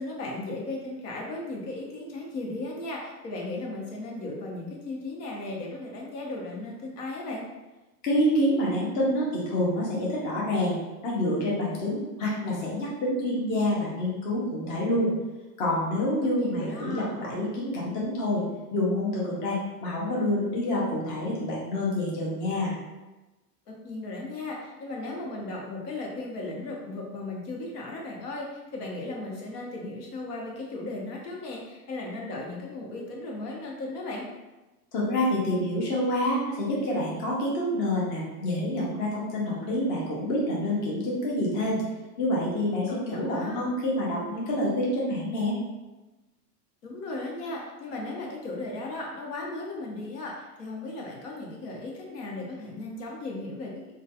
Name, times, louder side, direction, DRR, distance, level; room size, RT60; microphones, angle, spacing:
voice 1, 0.0-7.4 16.3-17.1 23.7-34.3 42.9-43.7 46.8-53.7, left 2 dB, 75° left, -2 dB, 0.9 m, -36 dB
voice 2, 8.0-10.8 11.0-15.1 15.6-18.4 18.7-22.8 34.9-41.8 42.2-45.6, left 1 dB, 20° left, -5 dB, 0.4 m, -27 dB
2.3 x 2.2 x 2.7 m, 1.1 s
supercardioid pair, 130°, 48 cm